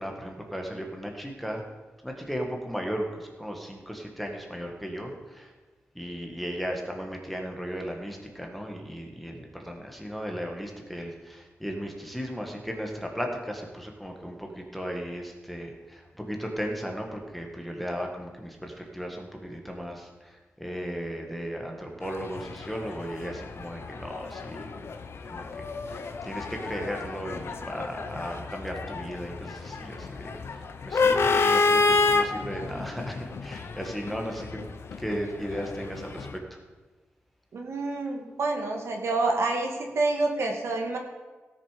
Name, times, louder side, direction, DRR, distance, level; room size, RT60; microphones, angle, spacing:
voice 1, 0.0-1.6 2.0-5.5 5.9-24.8 25.3-25.4 25.9-30.3 30.8-34.6 35.0-36.6, equal, ahead, 1 dB, 1.5 m, -36 dB
sound 1, 22.0-36.3, left 4 dB, 60° left, 0.8 m, -30 dB
voice 2, 37.5-41.0, right 3 dB, 75° right, 2 dB, 1.9 m, -28 dB
16.5 x 7.0 x 5.0 m, 1.3 s
wide cardioid pair, 135°, 5 cm